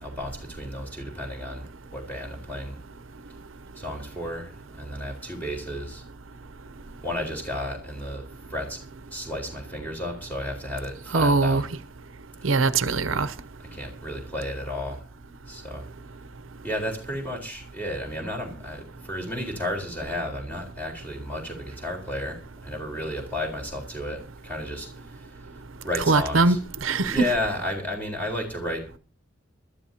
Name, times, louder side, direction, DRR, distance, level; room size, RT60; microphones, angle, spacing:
voice 1, 0.0-2.8 3.7-6.0 7.0-8.2 8.5-8.8 9.1-11.6 13.7-15.0 15.5-15.9 16.6-25.4 25.8-26.6 27.0-29.0, left 1 dB, 10° left, 4.1 m, -33 dB
voice 2, 11.1-11.6 12.4-13.3 26.1-27.2, right 3 dB, 85° right, 0.8 m, -21 dB
22.0 x 13.0 x 2.8 m
head